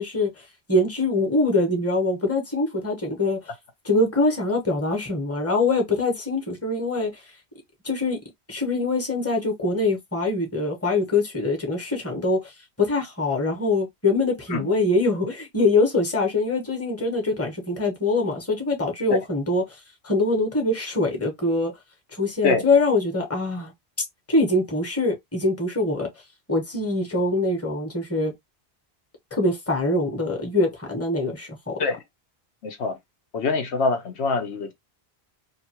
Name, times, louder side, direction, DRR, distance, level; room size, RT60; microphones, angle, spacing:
voice 1, 0.0-3.4 3.8-7.2 7.8-8.2 8.5-21.7 22.1-23.7 24.0-26.1 26.5-28.3 29.3-31.8, left 2 dB, 15° left, 0.9 m, -24 dB
voice 2, 32.6-33.0 33.3-34.7, left 4 dB, 90° left, 1.1 m, -24 dB
2.8 x 2.5 x 2.9 m
omnidirectional pair, 1.1 m